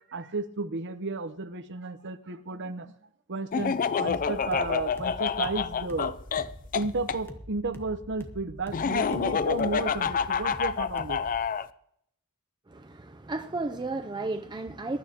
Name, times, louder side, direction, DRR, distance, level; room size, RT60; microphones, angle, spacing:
voice 1, 0.0-2.9 3.3-6.1 6.7-11.2, right 3 dB, 55° right, 0.9 m, -33 dB
Laughter, 3.5-7.2 8.7-11.7, left 6 dB, 40° left, 0.4 m, -28 dB
sound 1, 4.1-11.4, equal, 10° left, 1.2 m, -45 dB
voice 2, 12.7-15.0, right 2 dB, 20° right, 0.5 m, -33 dB
22.5 x 12.0 x 2.9 m
head